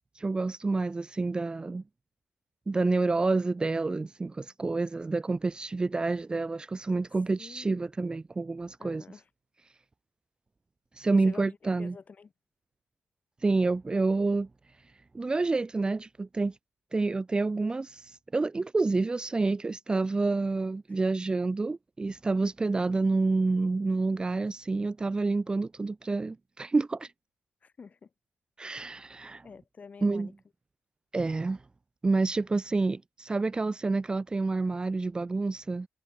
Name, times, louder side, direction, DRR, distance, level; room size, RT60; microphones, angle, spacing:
voice 1, 0.1-1.8 2.7-9.0 11.0-11.9 13.4-14.5 15.1-16.5 16.9-27.1 28.6-29.4 30.0-30.3 31.1-31.6 32.0-35.9, right 3 dB, 20° right, 1.1 m, -28 dB
voice 2, 7.4-7.9 8.8-9.3 11.1-12.3 27.6-28.1 29.4-30.3, left 5 dB, 35° left, 6.0 m, -48 dB
cardioid pair, 135°, 5 cm